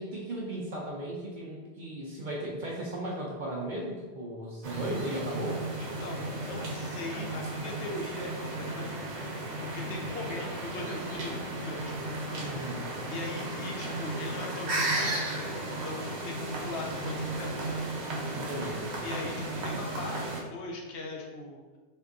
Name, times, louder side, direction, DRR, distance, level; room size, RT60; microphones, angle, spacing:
voice 1, 0.0-5.6 12.4-12.9 18.3-18.9, right 1 dB, 60° right, -4 dB, 0.5 m, -36 dB
sound 1, 4.6-20.4, right 2 dB, 75° right, 1.0 m, -34 dB
voice 2, 5.8-9.1 9.6-12.0 12.4-12.6 13.1-17.8 19.0-21.6, left 2 dB, 75° left, 0 dB, 0.8 m, -40 dB
3.4 x 2.6 x 2.4 m, 1.3 s
omnidirectional pair, 1.2 m